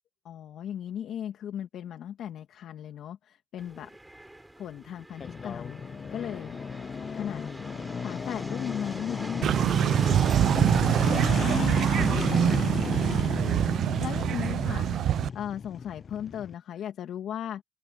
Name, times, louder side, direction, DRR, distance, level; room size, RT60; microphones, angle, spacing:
voice 1, 0.2-3.9 4.6-6.6 7.1-7.4 8.0-15.1 15.3-17.6, left 10 dB, 75° left, 2.4 m, -38 dB
sound 1, 3.6-10.8, right 1 dB, 10° right, 7.5 m, -43 dB
sound 2, 5.2-16.5, left 6 dB, 45° left, 0.4 m, -34 dB
sound 3, 9.4-15.3, right 10 dB, 70° right, 0.7 m, -24 dB
cardioid pair, 90°, 0 cm